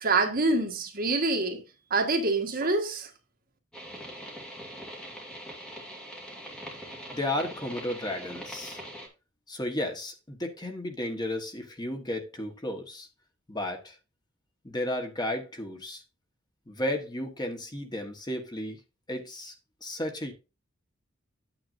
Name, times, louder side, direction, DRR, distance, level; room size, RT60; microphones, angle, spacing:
voice 1, 0.0-1.6 1.9-3.1, right 3 dB, 50° right, 1.6 m, -26 dB
sound 1, 3.7-9.1, equal, 5° left, 2.4 m, -42 dB
voice 2, 7.1-8.8 9.5-13.1 13.5-13.9 14.6-16.0 16.7-18.8 19.1-19.5 19.8-20.3, left 1 dB, 20° left, 1.3 m, -33 dB
9.1 x 7.8 x 2.6 m
head